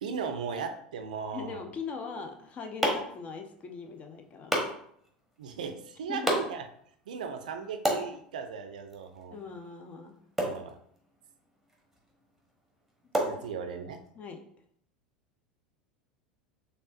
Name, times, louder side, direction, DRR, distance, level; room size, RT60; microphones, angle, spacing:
voice 1, 0.0-1.6 5.4-6.6 7.1-9.4 10.4-10.8 13.2-14.0, right 6 dB, 65° right, 7 dB, 0.4 m, -37 dB
voice 2, 1.3-4.6 6.1-6.3 9.3-10.2 13.2-13.3 14.1-14.4, left 5 dB, 30° left, 5 dB, 0.6 m, -40 dB
sound 1, 2.1-14.1, right 1 dB, ahead, 1.0 m, -36 dB
4.3 x 3.4 x 2.4 m, 0.67 s
figure-of-eight pair, 75°, 5 cm